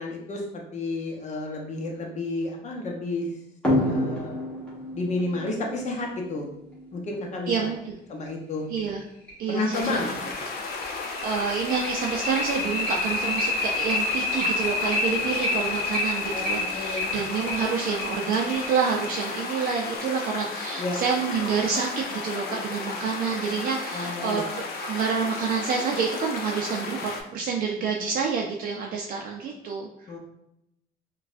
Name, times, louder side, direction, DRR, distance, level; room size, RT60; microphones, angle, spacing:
voice 1, 0.0-3.3 3.8-4.4 4.9-6.5 6.9-7.7 8.1-8.7 9.5-10.1 16.3-17.1 20.8-21.0 23.9-24.5 30.1-30.2, left 2 dB, 45° left, 0 dB, 0.9 m, -31 dB
sound 1, 3.6-6.8 8.3-8.4 8.8-8.9 9.3-9.4 9.8-19.8, left 2 dB, 5° left, 1.3 m, -29 dB
voice 2, 7.5-8.0 8.7-9.0 9.4-10.6 11.2-30.1, right 5 dB, 55° right, -1 dB, 0.5 m, -28 dB
sound 2, 9.7-27.2, left 4 dB, 70° left, 0.7 m, -34 dB
4.6 x 2.3 x 2.5 m, 0.81 s
cardioid pair, 110°, 17 cm